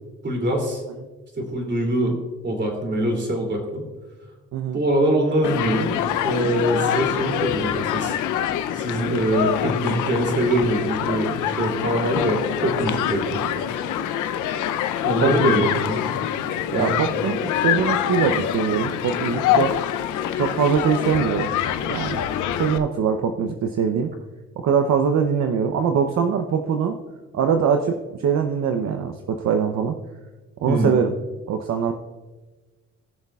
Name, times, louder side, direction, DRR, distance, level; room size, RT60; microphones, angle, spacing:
voice 1, 0.2-0.8 1.4-2.2 2.4-3.9 4.7-6.0 6.2-8.1 8.7-13.6 15.0-16.0 16.7-17.0 30.6-31.0, right 1 dB, 35° right, 1 dB, 2.9 m, -23 dB
Human group actions, 5.4-22.8, left 10 dB, 90° left, 0.7 m, -25 dB
voice 2, 15.2-15.6 16.7-19.8 20.4-21.5 21.9-22.2 22.6-24.1 24.6-27.0 27.3-30.0 30.6-31.1 31.5-31.9, right 6 dB, 65° right, 5 dB, 0.8 m, -22 dB
19.5 x 6.6 x 2.4 m, 1.2 s
cardioid pair, 90°, 30 cm